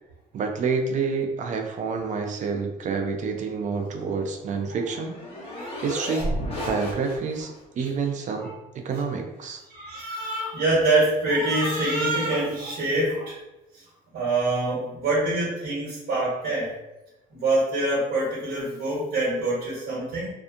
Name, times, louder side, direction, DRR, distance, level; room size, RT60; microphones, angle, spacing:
voice 1, 0.3-5.1 5.8-6.3 6.6-8.5 8.7-9.6, right 5 dB, 45° right, 4 dB, 0.5 m, -28 dB
sound 1, 4.1-7.6, equal, 35° left, 1.1 m, -33 dB
voice 2, 6.5-6.9 7.8-7.9 8.4-8.5 9.7-13.4 13.7-13.8 14.1-16.7 17.3-20.3, right 2 dB, 70° right, -7 dB, 1.2 m, -25 dB
2.6 x 2.3 x 2.4 m, 0.98 s
cardioid pair, 110°, 17 cm